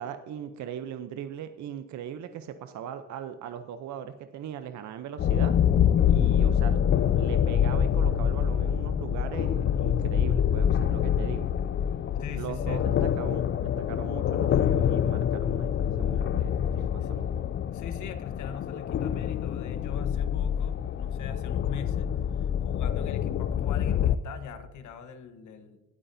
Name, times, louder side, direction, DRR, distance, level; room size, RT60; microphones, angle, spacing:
voice 1, 0.0-5.6 6.1-6.8 7.2-11.5 12.4-17.4, right 9 dB, 70° right, 9 dB, 0.7 m, -39 dB
sound 1, 5.2-24.2, left 9 dB, 40° left, 0.4 m, -26 dB
voice 2, 12.2-12.8 16.8-17.1 17.7-25.8, left 7 dB, 75° left, 9 dB, 1.1 m, -41 dB
19.5 x 8.4 x 2.7 m, 1.2 s
cardioid pair, 90°, 30 cm